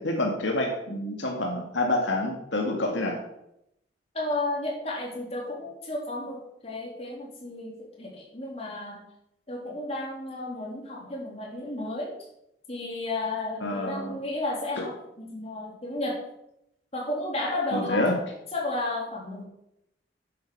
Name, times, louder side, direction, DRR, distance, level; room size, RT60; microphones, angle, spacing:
voice 1, 0.0-3.2 13.6-14.2 17.7-18.2, left 1 dB, 80° left, 1 dB, 2.2 m, -27 dB
voice 2, 4.1-9.0 9.5-12.2 12.7-16.2 16.9-18.1 18.5-19.4, left 2 dB, 30° left, -3 dB, 3.6 m, -33 dB
10.5 x 8.3 x 6.4 m, 0.80 s
head